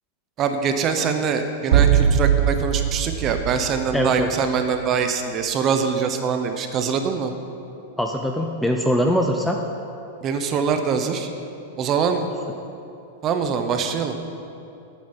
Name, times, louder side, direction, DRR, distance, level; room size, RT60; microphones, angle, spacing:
voice 1, 0.4-7.3 10.2-11.3 11.8-12.3 13.2-14.1, right 6 dB, 25° right, 7 dB, 0.9 m, -23 dB
sound 1, 1.7-4.6, right 9 dB, 65° right, 0.5 m, -20 dB
voice 2, 3.9-4.3 8.0-9.6, equal, 5° left, 2 dB, 0.5 m, -22 dB
8.9 x 7.3 x 9.0 m, 2.8 s
supercardioid pair, 155°, 0 cm